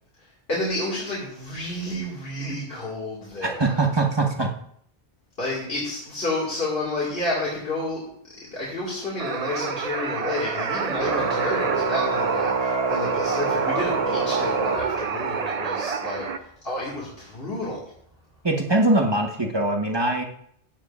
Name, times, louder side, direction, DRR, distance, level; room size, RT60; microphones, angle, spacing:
voice 1, 0.2-3.8 5.4-8.1 8.5-17.9, left 2 dB, 60° left, -6 dB, 2.5 m, -30 dB
voice 2, 3.4-4.5 18.4-20.2, right 2 dB, 25° right, 2 dB, 1.1 m, -22 dB
sound 1, 9.2-16.4, right 5 dB, 45° right, 0.6 m, -28 dB
Organ, 11.0-15.5, right 4 dB, 70° right, 1.6 m, -27 dB
14.5 x 9.1 x 2.5 m, 0.68 s
omnidirectional pair, 1.1 m